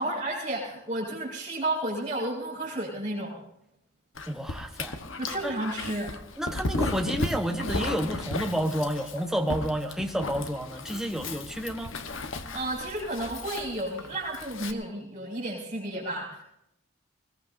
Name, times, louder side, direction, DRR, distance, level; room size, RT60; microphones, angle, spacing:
voice 1, 0.0-3.4 5.2-6.1 12.5-16.4, right 1 dB, 25° right, -9 dB, 5.2 m, -32 dB
Dog, 4.2-14.7, left 2 dB, 75° left, 1.2 m, -35 dB
voice 2, 4.3-5.0 5.4-5.5 6.4-11.9, equal, ahead, 3 dB, 1.2 m, -30 dB
21.0 x 20.5 x 2.7 m, 0.82 s
head